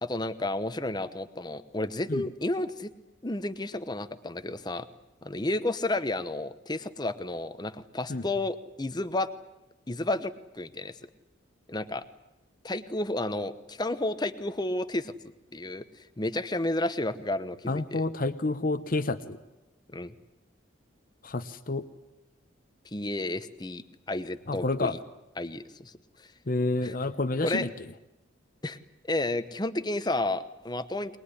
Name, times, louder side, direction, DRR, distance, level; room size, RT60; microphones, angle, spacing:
voice 1, 0.0-2.9 3.2-4.9 5.2-9.3 9.9-11.0 11.7-12.0 12.6-15.1 15.5-15.9 16.2-18.1 19.9-20.1 22.9-25.0 25.4-25.9 26.2-26.3 26.8-26.9 27.4-27.7 28.6-28.8 29.1-31.2, left 2 dB, 20° left, 12 dB, 1.0 m, -31 dB
voice 2, 17.7-19.4 21.2-21.8 24.5-25.0 26.5-27.7, left 2 dB, 45° left, 10 dB, 0.9 m, -29 dB
23.0 x 20.5 x 9.9 m, 0.96 s
head